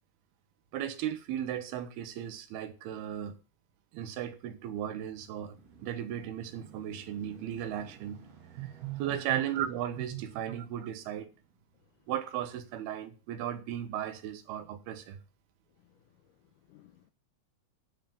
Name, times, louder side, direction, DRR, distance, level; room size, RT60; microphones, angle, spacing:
voice 1, 0.7-3.4 3.9-8.2 8.5-11.3 12.1-15.2, right 10 dB, 85° right, 3.1 m, -36 dB
sound 1, 4.6-13.2 13.9-14.0, right 5 dB, 60° right, 3.9 m, -56 dB
voice 2, 15.8-17.1, left 9 dB, 80° left, 1.9 m, -60 dB
10.0 x 8.0 x 7.1 m
omnidirectional pair, 4.4 m